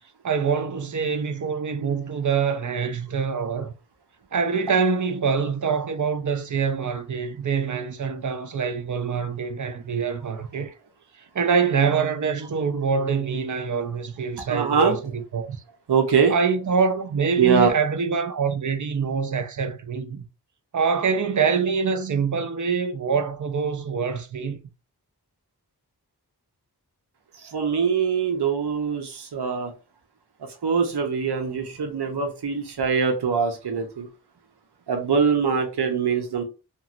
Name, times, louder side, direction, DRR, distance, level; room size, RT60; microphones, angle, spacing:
voice 1, 0.2-3.7 4.3-10.7 11.3-15.6 16.3-20.2 20.7-24.6, right 5 dB, 50° right, 0.5 m, -25 dB
voice 2, 14.5-15.0 15.9-16.3 17.4-17.7 27.4-29.7 30.6-34.1 34.9-36.4, right 6 dB, 85° right, 0.7 m, -23 dB
2.9 x 2.6 x 2.5 m
wide cardioid pair, 60°, 39 cm